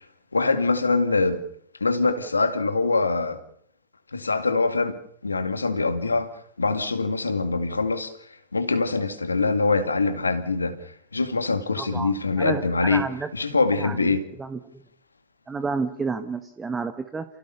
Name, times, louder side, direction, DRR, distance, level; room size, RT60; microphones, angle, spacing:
voice 1, 0.3-1.4 1.8-3.4 4.1-5.0 5.2-8.1 8.5-10.8 11.1-13.0 13.3-14.3, left 3 dB, 85° left, 2.2 m, -23 dB
voice 2, 11.8-13.3 13.8-14.1 14.4-14.6 15.5-17.2, right 4 dB, 15° right, 1.6 m, -30 dB
29.0 x 16.5 x 6.9 m
figure-of-eight pair, 95°, 0 cm